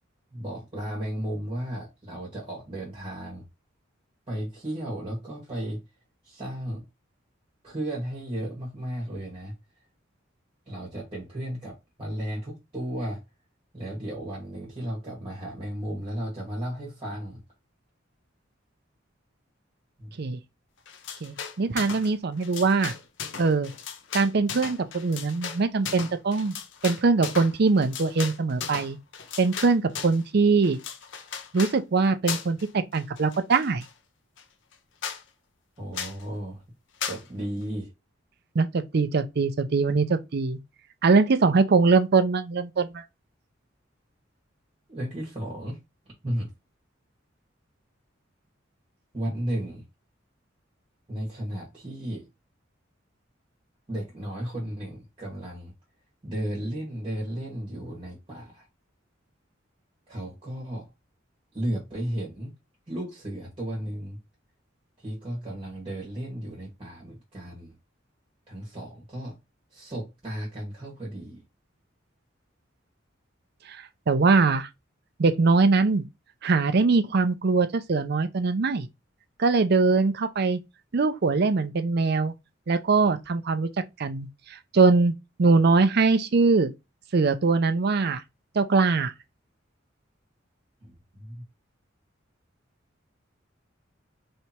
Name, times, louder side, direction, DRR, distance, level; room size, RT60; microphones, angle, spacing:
voice 1, 0.3-3.4 4.3-5.8 6.2-6.9 7.6-9.5 10.7-13.2 13.7-17.4 20.0-20.1 35.8-36.6 37.0-37.9 44.9-45.8 46.2-46.5 49.1-49.8 51.1-52.3 53.9-55.7 56.2-58.7 60.1-60.8 61.5-62.5 62.9-64.2 65.0-67.8 68.5-69.4 69.7-71.4 90.8-91.4, right 1 dB, 30° right, 1.5 m, -34 dB
sound 1, 20.9-22.1 22.4-30.2 30.6-31.8 32.3-32.7 32.9-33.9 34.4-34.5 34.7-34.8 35.0-35.2 35.9-36.2 37.0-37.2, left 7 dB, 70° left, 0.6 m, -36 dB
voice 2, 21.2-22.9 23.4-23.7 24.1-26.5 26.8-29.0 29.4-30.8 31.5-33.8 38.5-40.6 41.0-43.0 73.7-73.8 74.1-74.7 75.2-76.0 76.4-78.9 79.4-80.6 80.9-82.3 82.7-83.7 84.0-85.1 85.4-86.7 87.1-88.2 88.6-89.1, right 4 dB, 55° right, 0.5 m, -22 dB
3.3 x 2.9 x 4.3 m
head